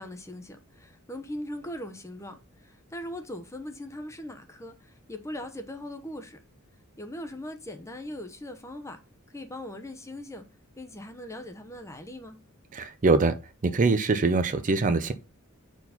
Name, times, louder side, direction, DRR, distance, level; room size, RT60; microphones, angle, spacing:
voice 1, 0.0-6.4 7.0-9.0 9.3-10.4 10.8-12.4, left 1 dB, 15° left, 0.7 m, -40 dB
voice 2, 12.7-13.3 13.6-15.1, right 3 dB, 35° right, 0.5 m, -23 dB
4.5 x 4.0 x 5.6 m
head